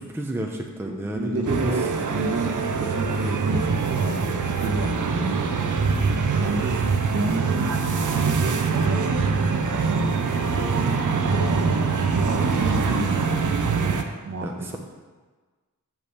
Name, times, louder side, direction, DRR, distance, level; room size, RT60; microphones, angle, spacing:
voice 1, 0.1-1.7 14.4-14.8, right 1 dB, 5° right, 1 dB, 0.6 m, -31 dB
voice 2, 0.8-4.3 4.6-5.5 6.3-7.5 8.0-9.1 9.3-9.9 10.2-13.2 14.2-14.8, right 2 dB, 45° right, 1 dB, 1.1 m, -31 dB
sound 1, 1.5-14.0, right 5 dB, 65° right, 0.7 m, -23 dB
6.1 x 5.5 x 6.8 m, 1.4 s
wide cardioid pair, 140°, 34 cm